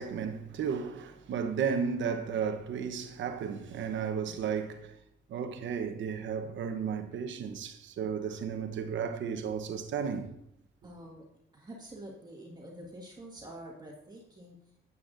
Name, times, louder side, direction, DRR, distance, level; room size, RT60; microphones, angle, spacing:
voice 1, 0.0-4.9 5.3-10.3, right 6 dB, 70° right, 1.0 m, -34 dB
voice 2, 10.8-11.3 11.5-14.6, right 1 dB, 20° right, 1.8 m, -47 dB
11.5 x 8.4 x 2.6 m
cardioid pair, 90°, 20 cm